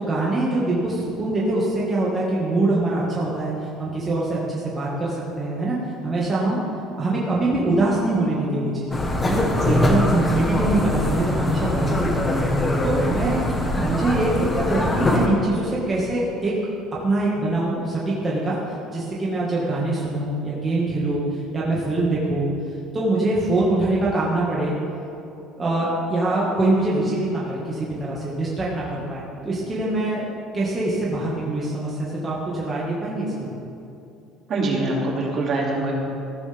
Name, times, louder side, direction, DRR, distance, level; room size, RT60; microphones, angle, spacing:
voice 1, 0.0-5.8 6.0-6.6 7.0-9.0 9.3-9.5 9.7-12.5 12.8-13.5 13.7-16.6 17.0-18.6 18.9-22.5 22.9-24.8 25.6-33.5, right 2 dB, 20° right, -6 dB, 1.9 m, -24 dB
sound 1, 8.9-15.3, left 1 dB, 15° left, 1.4 m, -22 dB
voice 2, 34.5-35.9, right 2 dB, 45° right, -3 dB, 2.7 m, -24 dB
15.0 x 13.0 x 3.6 m, 2.7 s
cardioid pair, 140°, 0 cm